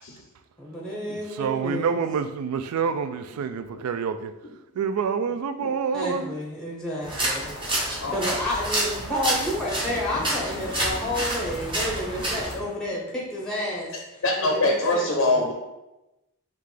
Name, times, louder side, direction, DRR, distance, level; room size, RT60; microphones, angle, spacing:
voice 1, 0.6-2.0 5.9-7.5 8.1-15.5, left 1 dB, 5° left, 0.8 m, -30 dB
voice 2, 1.3-4.4 4.7-6.3, right 6 dB, 85° right, 0.3 m, -27 dB
sound 1, 7.0-12.5, right 1 dB, 25° right, 1.0 m, -29 dB
voice 3, 8.0-8.4 14.2-15.5, left 2 dB, 60° left, 0.5 m, -23 dB
5.6 x 2.4 x 3.2 m
head